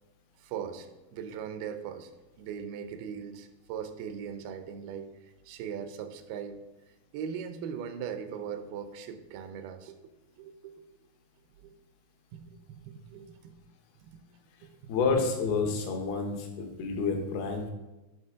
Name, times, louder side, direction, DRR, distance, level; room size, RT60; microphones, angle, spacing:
voice 1, 0.4-2.1 2.4-6.6 7.1-10.0 10.4-10.8 11.6-11.7 12.3-13.5 14.0-14.2 14.6-14.9, right 7 dB, 80° right, 9 dB, 2.5 m, -40 dB
voice 2, 14.9-17.7, left 4 dB, 75° left, 2 dB, 2.9 m, -29 dB
11.0 x 4.2 x 3.7 m, 1.1 s
omnidirectional pair, 4.5 m